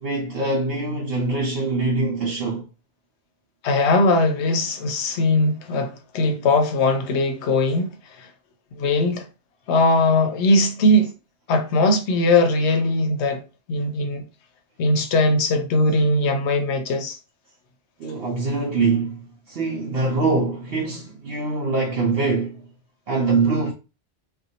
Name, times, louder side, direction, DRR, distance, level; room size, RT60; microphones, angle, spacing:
voice 1, 0.0-2.7 5.1-5.2 18.0-22.6 23.1-23.7, right 3 dB, 65° right, 0.7 m, -23 dB
voice 2, 3.6-8.3 8.7-9.3 9.7-11.1 11.5-13.4 13.7-14.2 14.8-17.2, left 2 dB, 85° left, 0.9 m, -20 dB
2.6 x 2.2 x 2.7 m
omnidirectional pair, 1.1 m